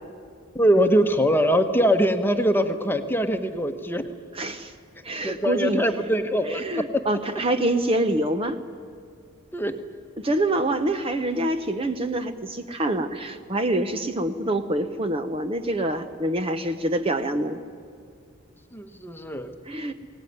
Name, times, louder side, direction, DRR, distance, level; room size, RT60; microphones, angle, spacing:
voice 1, 0.5-4.1 5.2-6.6 9.5-9.7 18.7-19.5, equal, 10° left, 7 dB, 1.2 m, -22 dB
voice 2, 4.3-4.7 5.0-5.8 6.4-8.6 10.2-17.6 19.7-19.9, right 1 dB, 25° right, 8 dB, 0.8 m, -26 dB
22.0 x 19.0 x 9.4 m, 2.4 s
head